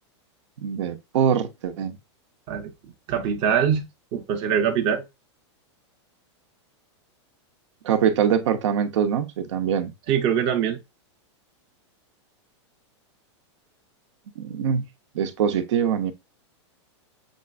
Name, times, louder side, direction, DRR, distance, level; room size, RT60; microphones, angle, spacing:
voice 1, 0.6-2.0 7.8-9.9 14.4-14.8 15.1-16.1, right 8 dB, 75° right, 0.9 m, -23 dB
voice 2, 2.5-3.8 4.1-5.0 10.1-10.8, right 8 dB, 35° right, 0.7 m, -23 dB
7.2 x 2.5 x 2.4 m
supercardioid pair, 145°, 15 cm